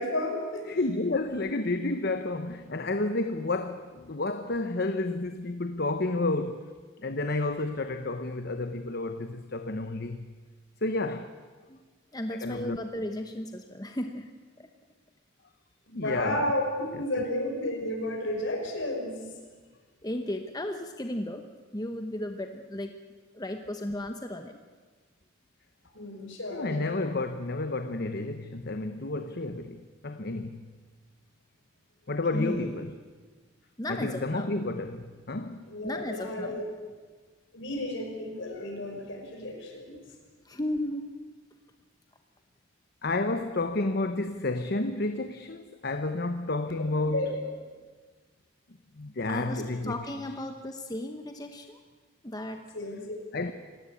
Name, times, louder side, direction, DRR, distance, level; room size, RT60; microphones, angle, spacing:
voice 1, 0.0-0.7 15.9-19.3 25.9-26.8 32.3-32.6 35.7-36.7 37.5-39.9 47.1-47.4 52.7-53.2, left 1 dB, 65° left, 5.7 m, -32 dB
voice 2, 0.7-6.7 7.0-10.3 10.8-11.3 12.3-12.8 15.9-16.4 17.1-17.2 26.5-30.7 32.1-32.9 33.9-35.7 43.0-47.3 49.0-50.0 53.3-53.5, left 2 dB, 50° left, 1.0 m, -31 dB
voice 3, 12.1-14.3 14.6-14.7 20.0-23.0 23.3-24.6 32.3-32.6 33.8-34.5 35.8-36.6 40.4-41.1 49.3-51.8 52.2-52.6, left 1 dB, 20° left, 1.0 m, -35 dB
27.5 x 17.5 x 8.5 m
head